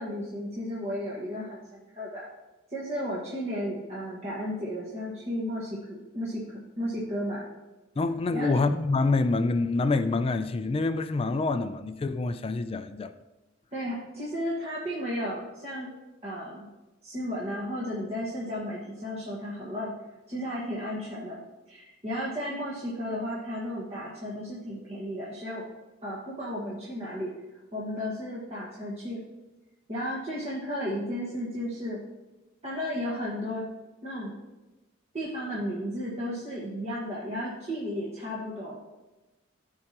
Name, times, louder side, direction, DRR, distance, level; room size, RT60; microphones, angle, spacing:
voice 1, 0.0-2.3 2.7-7.4 8.3-8.6 13.7-15.9 16.2-16.7 17.0-19.9 20.3-21.4 21.7-25.6 26.0-27.3 27.7-29.2 29.9-32.0 32.6-33.6 34.0-34.4 35.1-38.8, equal, 30° right, 1.5 m, -34 dB
voice 2, 8.0-13.1, left 3 dB, 30° left, 0.3 m, -26 dB
14.0 x 4.7 x 2.9 m
head